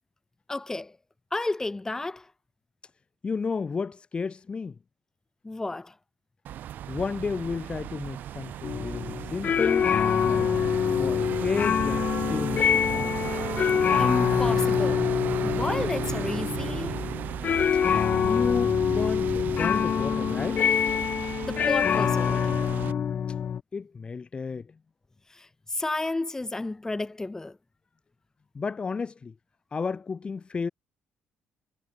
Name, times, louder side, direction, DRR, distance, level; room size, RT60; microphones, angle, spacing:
voice 1, 0.5-1.0 1.3-2.3 5.4-5.9 14.0-15.1 15.4-17.0 21.4-22.4 25.3-27.6, left 2 dB, 15° left, 1.6 m, -32 dB
voice 2, 3.2-4.7 6.9-9.9 10.2-10.5 10.9-13.1 18.2-20.7 23.7-24.7 28.5-29.3 29.7-30.7, left 5 dB, 35° left, 1.1 m, -32 dB
sound 1, 6.4-22.9, right 11 dB, 65° right, 1.2 m, -35 dB
sound 2, 8.6-23.6, left 8 dB, 50° left, 2.0 m, -25 dB
cardioid pair, 85°, 3 cm